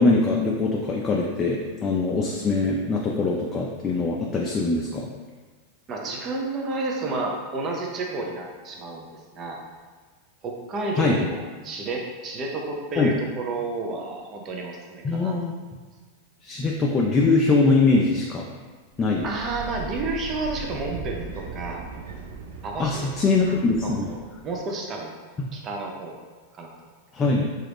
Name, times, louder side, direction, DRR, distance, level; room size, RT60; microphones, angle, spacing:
voice 1, 0.0-5.1 10.9-11.3 13.0-13.1 15.0-15.5 16.4-18.5 19.0-19.3 22.8-24.2 25.4-25.5 27.1-27.5, left 3 dB, 25° left, -2 dB, 0.4 m, -22 dB
voice 2, 5.9-9.6 10.4-15.3 19.2-21.8 22.6-23.1 23.8-25.1 25.5-26.2 26.6-26.7, right 2 dB, 35° right, 0 dB, 0.6 m, -31 dB
sound 1, 18.9-24.5, right 4 dB, 80° right, 0.5 m, -38 dB
2.9 x 2.4 x 3.4 m, 1.4 s
hypercardioid pair, 115°, 0 cm